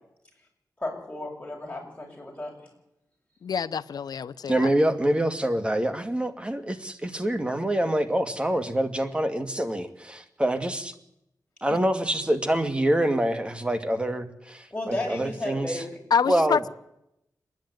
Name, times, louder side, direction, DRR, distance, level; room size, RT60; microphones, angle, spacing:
voice 1, 0.8-2.7 14.7-16.0, left 1 dB, 15° left, 0 dB, 7.1 m, -33 dB
voice 2, 3.4-4.7 11.7-11.8 16.1-16.7, left 6 dB, 85° left, 14 dB, 0.7 m, -26 dB
voice 3, 4.5-10.9 11.6-15.8 16.3-16.7, right 1 dB, 15° right, 8 dB, 2.0 m, -26 dB
26.5 x 10.5 x 9.3 m, 0.84 s
wide cardioid pair, 90°, 7 cm